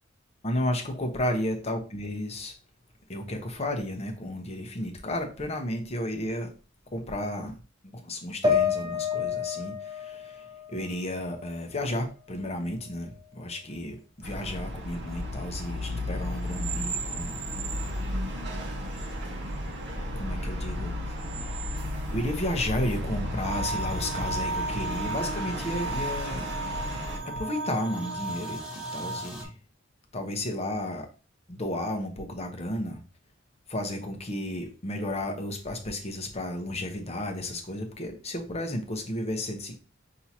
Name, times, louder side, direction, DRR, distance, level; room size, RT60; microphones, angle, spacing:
voice 1, 0.4-2.5 3.1-6.5 6.9-7.6 7.9-17.4 20.1-21.2 21.4-21.6 22.1-26.5 27.2-29.5 30.1-31.1 31.5-33.0 33.7-39.8, left 1 dB, 35° left, 3 dB, 0.8 m, -33 dB
sound 1, 8.4-11.8 12.2-13.3, left 6 dB, 20° right, 0.6 m, -30 dB
sound 2, 14.2-27.2, equal, 60° right, 1.3 m, -33 dB
sound 3, 23.4-29.4, right 2 dB, 5° right, 1.0 m, -34 dB
5.9 x 2.8 x 2.8 m, 0.34 s
head